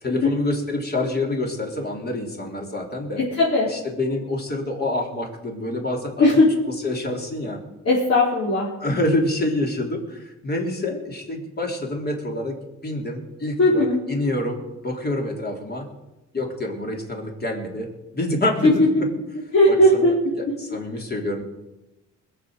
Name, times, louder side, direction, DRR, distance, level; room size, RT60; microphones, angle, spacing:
voice 1, 0.0-3.2 3.6-6.4 6.6-7.6 8.8-12.6 12.8-15.9 16.3-19.1 19.7-21.4, left 1 dB, 30° left, 1 dB, 3.8 m, -27 dB
voice 2, 3.2-3.7 6.2-6.5 7.9-8.7 13.6-14.0 18.6-18.7 19.5-20.2, left 1 dB, 55° left, -7 dB, 4.6 m, -17 dB
21.5 x 7.2 x 6.5 m, 0.99 s
cardioid pair, 90°, 30 cm